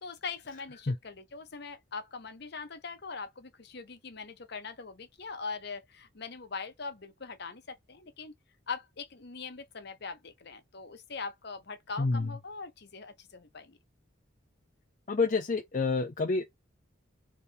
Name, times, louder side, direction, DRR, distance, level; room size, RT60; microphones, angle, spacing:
voice 1, 0.0-8.3 8.7-13.8, left 4 dB, 55° left, 0.8 m, -41 dB
voice 2, 12.0-12.3 15.1-16.5, left 3 dB, 40° left, 0.5 m, -28 dB
3.4 x 3.1 x 4.0 m
head